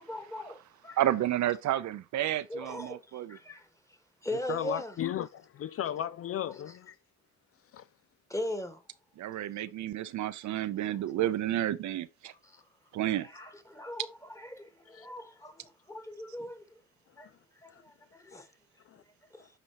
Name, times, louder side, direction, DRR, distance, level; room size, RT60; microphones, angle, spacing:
voice 1, 0.0-1.0 2.5-3.7 4.2-4.9 8.3-8.8 12.4-12.6 13.2-16.8 17.2-17.3 17.6-18.5 19.3-19.5, left 1 dB, 10° left, 1.6 m, -40 dB
voice 2, 1.0-3.4 9.2-12.3 12.9-13.3, right 13 dB, 70° right, 0.6 m, -31 dB
voice 3, 4.3-7.0 7.7-7.9 14.9-15.1 17.2-17.3 17.7-17.8 18.3-18.4 18.9-19.0 19.4-19.5, left 10 dB, 50° left, 0.4 m, -36 dB
12.0 x 4.2 x 2.9 m
cardioid pair, 90°, 30 cm